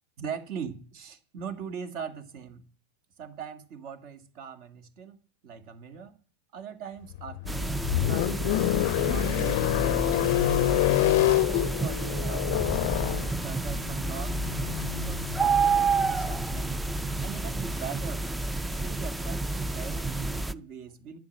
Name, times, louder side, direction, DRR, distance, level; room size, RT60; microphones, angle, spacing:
voice 1, 0.2-2.7 3.2-5.2 5.4-6.1 6.5-12.8 13.4-14.4 14.9-16.8 17.2-18.3 18.6-21.2, right 7 dB, 55° right, 8 dB, 2.0 m, -41 dB
sound 1, 7.1-17.3, left 16 dB, 65° left, 0.5 m, -27 dB
sound 2, 7.5-20.5, right 3 dB, 10° right, 0.5 m, -30 dB
10.5 x 7.2 x 9.0 m, 0.42 s
hypercardioid pair, 110°, 0 cm